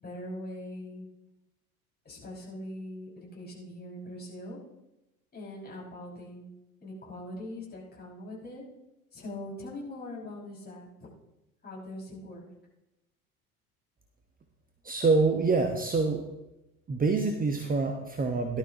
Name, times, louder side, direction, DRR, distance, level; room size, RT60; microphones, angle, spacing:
voice 1, 0.0-1.1 2.0-4.6 5.3-6.5 6.8-8.6 9.1-11.1 11.6-12.5, left 1 dB, 20° left, -4 dB, 5.7 m, -42 dB
voice 2, 14.8-16.2 16.9-18.6, right 4 dB, 20° right, 4 dB, 1.2 m, -26 dB
18.0 x 12.0 x 3.0 m, 0.95 s
figure-of-eight pair, 70°, 43 cm